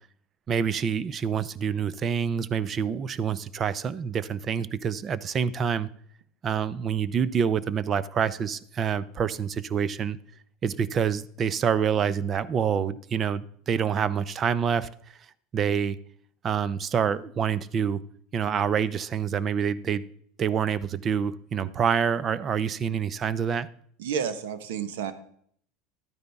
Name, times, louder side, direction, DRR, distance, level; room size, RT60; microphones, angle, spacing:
voice 1, 0.5-5.9 6.4-10.2 10.6-14.9 15.5-16.0 16.4-18.0 18.3-20.0 20.4-23.7, right 7 dB, 30° right, 18 dB, 0.6 m, -27 dB
voice 2, 24.0-25.1, right 7 dB, 85° right, 11 dB, 1.2 m, -30 dB
12.5 x 9.6 x 3.6 m, 0.62 s
supercardioid pair, 125°, 0 cm